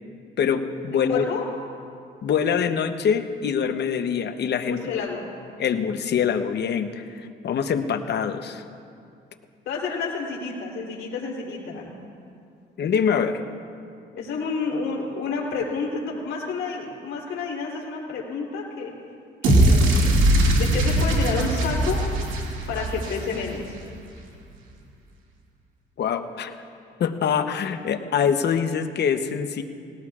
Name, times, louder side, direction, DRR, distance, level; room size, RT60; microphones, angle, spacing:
voice 1, 0.4-1.3 2.2-4.8 5.6-8.6 12.8-13.4 26.0-26.5 27.0-29.6, left 7 dB, 60° left, 8 dB, 0.9 m, -24 dB
voice 2, 0.9-1.5 4.7-5.3 9.7-11.9 14.1-18.9 19.5-20.2 20.6-22.0 22.7-23.8, left 4 dB, 75° left, -2 dB, 3.6 m, -30 dB
sound 1, 19.4-23.7, right 1 dB, 90° right, 2.2 m, -20 dB
19.0 x 17.5 x 2.4 m, 2.4 s
cardioid pair, 90°, 20 cm